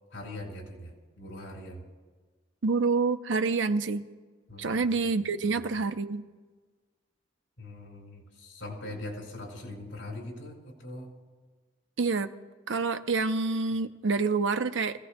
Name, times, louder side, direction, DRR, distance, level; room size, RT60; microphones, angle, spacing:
voice 1, 0.1-1.8 4.5-5.0 5.4-5.6 7.6-11.1, left 1 dB, 80° left, -1 dB, 4.3 m, -41 dB
voice 2, 2.6-4.0 4.6-6.2 12.0-12.3 12.7-15.1, right 4 dB, 75° right, 9 dB, 0.7 m, -27 dB
26.5 x 16.5 x 2.2 m, 1.4 s
head